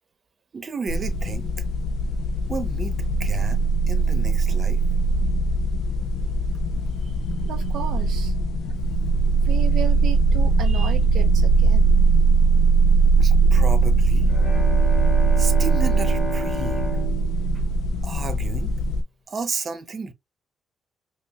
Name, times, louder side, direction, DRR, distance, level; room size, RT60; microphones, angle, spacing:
voice 1, 0.5-1.5 2.5-2.9 3.2-4.8 13.2-14.3 15.4-16.8 17.5-17.7 18.0-18.8 19.3-20.1, right 4 dB, 40° right, 0.8 m, -32 dB
sound 1, 0.9-19.0, right 3 dB, 80° left, 0.7 m, -20 dB
voice 2, 7.4-8.3 9.4-12.0, right 10 dB, 80° right, 0.4 m, -34 dB
Bowed string instrument, 14.2-18.7, right 2 dB, 25° left, 2.5 m, -33 dB
5.3 x 2.1 x 2.3 m
cardioid pair, 90°, 0 cm